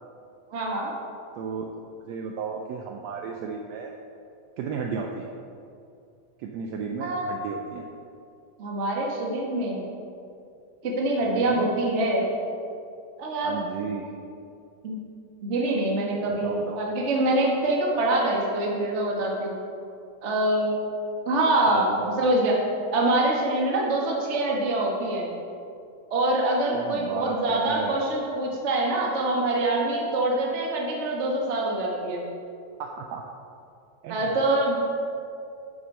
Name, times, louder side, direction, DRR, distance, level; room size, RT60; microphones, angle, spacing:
voice 1, 0.5-0.9 7.0-7.5 8.6-9.8 10.8-12.3 13.2-13.6 14.8-15.0 15.4-19.6 20.2-20.9 21.2-22.6 22.9-25.3 26.1-32.2 34.1-34.8, right 2 dB, 65° right, -2 dB, 0.7 m, -25 dB
voice 2, 1.4-3.9 4.6-5.3 6.4-7.9 11.2-11.7 13.4-14.1 16.3-16.8 21.7-22.2 26.7-28.0 32.8-33.2 34.0-34.3, right 6 dB, 80° right, 2 dB, 1.5 m, -34 dB
8.7 x 6.4 x 5.3 m, 2.5 s
omnidirectional pair, 3.5 m